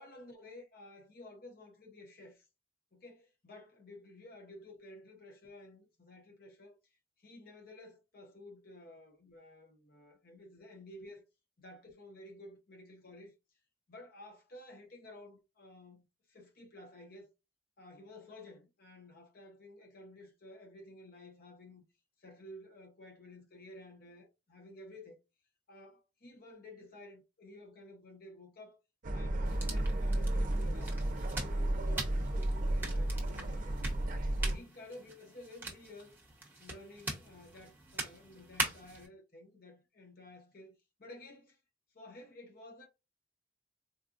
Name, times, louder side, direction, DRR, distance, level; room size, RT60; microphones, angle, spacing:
voice 1, 0.0-2.5 2.9-6.8 7.2-11.2 11.6-13.3 13.9-17.3 17.8-21.8 22.2-25.2 25.7-28.8 29.1-30.9 31.3-33.8 34.4-36.1 36.6-41.6 41.9-42.9, left 1 dB, 55° left, 0.9 m, -53 dB
sound 1, 29.0-34.6, right 1 dB, 50° right, 0.6 m, -33 dB
sound 2, 29.4-39.1, right 2 dB, 10° right, 1.1 m, -43 dB
4.2 x 2.4 x 2.4 m
head